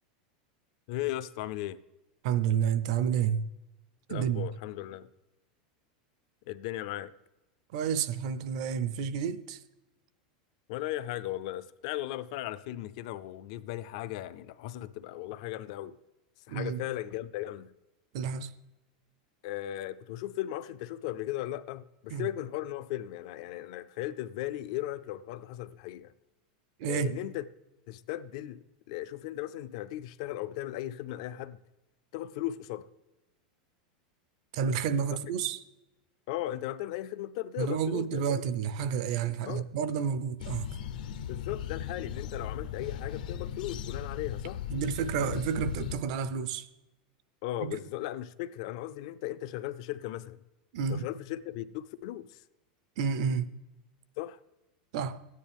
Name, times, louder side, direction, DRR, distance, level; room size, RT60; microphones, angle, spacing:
voice 1, 0.9-1.8 4.1-5.1 6.5-7.1 10.7-16.0 16.5-17.7 19.4-26.1 26.9-27.4 27.9-28.6 28.9-31.6 32.1-32.9 35.1-35.2 36.3-38.2 39.4-39.7 41.3-44.6 47.4-50.4 50.9-52.4 54.2-54.4, left 14 dB, 50° left, 0.4 m, -37 dB
voice 2, 2.2-3.4 4.1-4.5 7.7-9.6 16.5-16.8 18.1-18.5 22.1-22.3 26.8-27.1 34.5-35.6 37.6-40.9 44.7-46.7 47.6-47.8 50.7-51.1 53.0-53.5 54.9-55.2, right 7 dB, 50° right, 0.5 m, -30 dB
sound 1, 40.4-46.0, left 9 dB, 75° left, 0.7 m, -37 dB
13.5 x 9.6 x 3.5 m
supercardioid pair, 170°, 4 cm